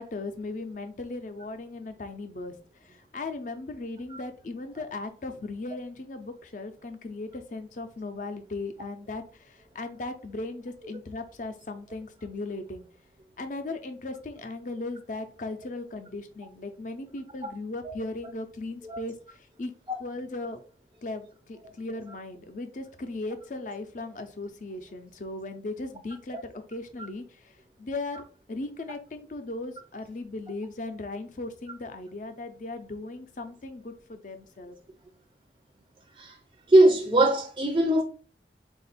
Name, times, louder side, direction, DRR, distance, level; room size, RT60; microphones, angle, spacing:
voice 1, 0.0-2.5 2.9-12.8 13.4-19.1 19.6-19.7 20.0-20.6 21.0-27.2 27.8-28.2 28.5-34.8, left 2 dB, 45° left, 0.5 m, -37 dB
voice 2, 36.7-38.0, right 1 dB, 25° right, 0.4 m, -20 dB
3.6 x 2.4 x 4.1 m
head